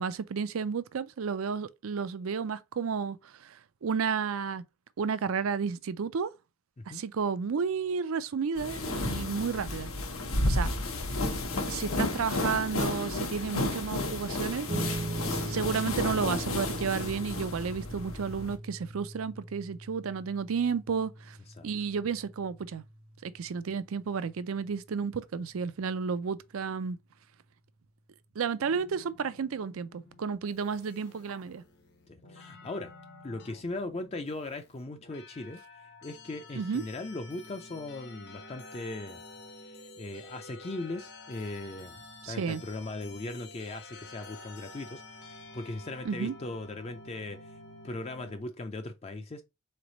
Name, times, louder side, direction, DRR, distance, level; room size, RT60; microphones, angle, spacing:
voice 1, 0.0-4.6 5.0-6.3 6.9-9.9 10.5-10.7 11.7-14.7 15.3-21.4 21.6-22.8 23.2-27.0 28.4-31.6 36.6-36.8 42.2-42.6 46.0-46.3, right 6 dB, 75° right, 0.4 m, -32 dB
sound 1, 8.6-18.6, left 2 dB, 80° left, 1.1 m, -32 dB
sound 2, 14.7-25.4, right 2 dB, 25° right, 0.5 m, -41 dB
sound 3, 28.6-48.4, left 2 dB, 50° left, 0.9 m, -50 dB
voice 2, 32.1-32.9 33.2-35.6 36.0-39.2 39.6-47.5 47.8-49.4, left 2 dB, 30° left, 0.4 m, -39 dB
3.9 x 3.3 x 3.9 m
head